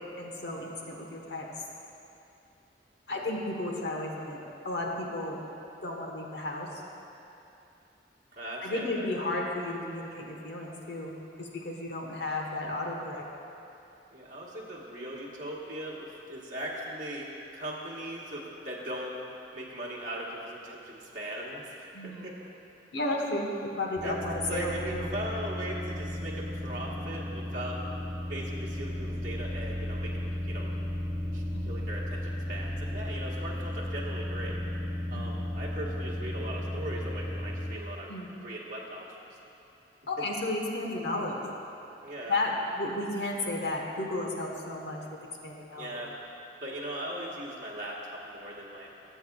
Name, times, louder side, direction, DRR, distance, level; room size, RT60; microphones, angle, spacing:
voice 1, 0.2-1.5 3.1-4.4 4.6-5.4 5.8-6.7 8.6-11.1 11.4-13.2 21.9-22.3 22.9-25.1 31.5-31.8 35.1-35.4 38.1-38.3 40.1-41.4 42.3-45.0 45.4-46.0, left 2 dB, 70° left, 0 dB, 1.2 m, -33 dB
voice 2, 8.3-9.1 14.1-19.2 19.5-22.3 24.0-24.2 24.5-27.8 28.3-30.7 31.3-34.6 35.1-38.1 38.4-39.4 42.0-42.4 45.7-46.1 46.6-48.9, right 1 dB, 50° right, -6 dB, 1.3 m, -39 dB
sound 1, 24.0-37.8, left 1 dB, 10° right, 0.6 m, -34 dB
18.5 x 7.9 x 2.3 m, 2.8 s
head